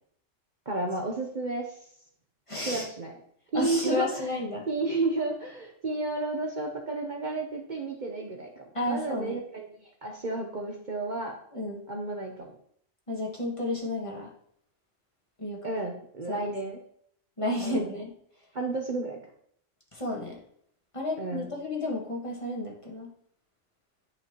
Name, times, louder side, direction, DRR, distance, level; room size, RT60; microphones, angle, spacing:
voice 1, 0.7-1.8 2.7-3.2 3.5-4.3 4.7-11.4 11.9-12.5 15.6-16.8 17.6-17.9 18.5-19.2 21.2-21.5, right 2 dB, 40° right, 1 dB, 0.9 m, -32 dB
voice 2, 2.5-2.9 3.5-4.6 8.7-9.4 11.5-11.8 13.1-14.3 15.4-15.7 16.3-16.4 17.4-18.1 19.9-20.4 20.9-23.1, left 1 dB, 25° left, -2 dB, 1.8 m, -32 dB
10.5 x 5.4 x 3.0 m, 0.65 s
omnidirectional pair, 1.3 m